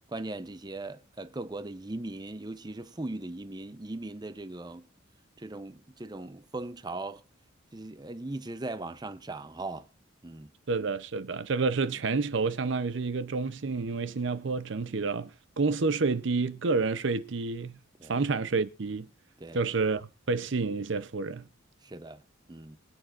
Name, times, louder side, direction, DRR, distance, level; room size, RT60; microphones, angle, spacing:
voice 1, 0.1-4.9 5.4-7.2 7.7-9.9 10.2-10.5 18.0-18.2 19.4-19.6 21.8-22.2 22.5-22.8, right 2 dB, 20° right, 0.6 m, -39 dB
voice 2, 10.7-15.3 15.6-17.8 18.1-19.1 19.5-21.4, right 4 dB, 60° right, 0.6 m, -29 dB
24.5 x 8.9 x 2.5 m
head